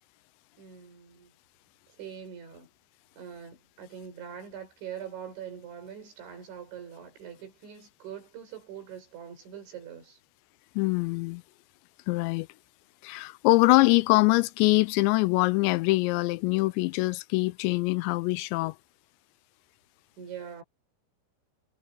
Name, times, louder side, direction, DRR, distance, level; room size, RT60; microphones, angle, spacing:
voice 1, 0.6-1.3 2.0-2.7 3.1-10.2 20.2-20.6, right 8 dB, 85° right, 8.3 m, -43 dB
voice 2, 10.8-11.4 12.1-12.5 13.0-18.8, left 22 dB, 85° left, 2.8 m, -23 dB
omnidirectional pair, 5.2 m